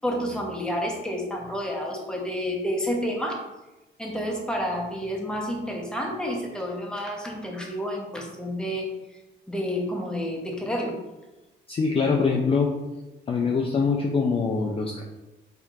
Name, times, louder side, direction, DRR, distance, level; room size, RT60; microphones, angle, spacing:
voice 1, 0.0-3.4 4.0-8.9 9.5-11.0, equal, 5° left, 0 dB, 0.7 m, -29 dB
voice 2, 11.7-12.7 13.3-15.0, left 5 dB, 30° left, 0 dB, 0.4 m, -23 dB
4.3 x 2.8 x 2.4 m, 1.1 s
cardioid pair, 90°, 20 cm